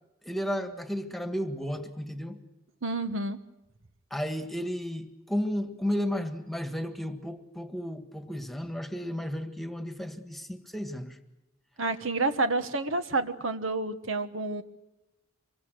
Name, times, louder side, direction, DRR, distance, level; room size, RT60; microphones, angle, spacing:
voice 1, 0.2-2.4 4.1-11.2, equal, ahead, 7 dB, 1.7 m, -33 dB
voice 2, 2.8-3.4 11.8-14.6, right 3 dB, 75° right, 10 dB, 1.4 m, -29 dB
26.0 x 23.5 x 6.4 m, 1.0 s
head